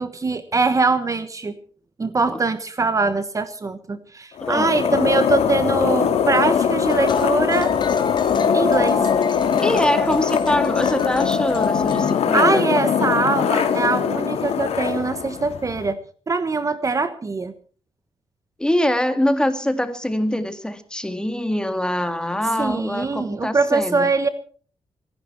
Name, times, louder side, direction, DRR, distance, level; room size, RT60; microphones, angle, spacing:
voice 1, 0.0-1.6 2.0-7.7 8.5-9.1 12.3-16.0 16.3-17.5 22.6-24.3, right 3 dB, 30° right, 11 dB, 1.2 m, -22 dB
sound 1, 4.4-15.9, left 7 dB, 85° left, 2.3 m, -21 dB
voice 2, 4.4-4.7 9.6-12.7 18.6-24.1, left 1 dB, 10° left, 9 dB, 2.1 m, -23 dB
sound 2, 6.9-12.1, left 2 dB, 45° left, 2.0 m, -28 dB
25.0 x 11.5 x 4.5 m, 0.44 s
cardioid pair, 105°, 10 cm